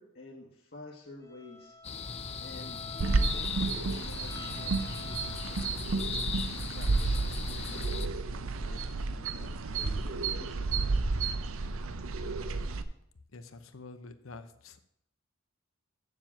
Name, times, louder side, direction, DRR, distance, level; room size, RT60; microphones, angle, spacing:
voice 1, 0.0-1.7 2.4-6.2 6.7-8.1 8.6-11.2, left 2 dB, 50° left, -2 dB, 1.4 m, -50 dB
Bowed string instrument, 1.2-5.9, left 2 dB, 15° left, 0.9 m, -49 dB
sound 1, 1.8-8.1, left 6 dB, 30° left, 0.4 m, -38 dB
sound 2, 3.0-12.8, right 3 dB, 75° right, 0.7 m, -31 dB
voice 2, 13.3-14.8, left 3 dB, 70° left, 10 dB, 0.8 m, -47 dB
7.5 x 7.4 x 7.3 m, 0.73 s
head